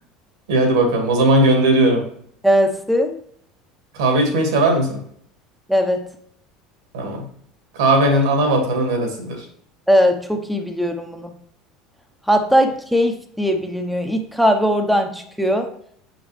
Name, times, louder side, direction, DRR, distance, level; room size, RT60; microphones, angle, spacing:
voice 1, 0.5-2.0 3.9-5.0 6.9-7.2 7.7-9.4, right 1 dB, 75° right, 2 dB, 2.0 m, -17 dB
voice 2, 2.4-3.2 5.7-6.1 9.9-11.3 12.3-15.7, equal, ahead, 4 dB, 0.9 m, -19 dB
7.2 x 5.1 x 3.3 m, 0.64 s
hypercardioid pair, 75°, 3 cm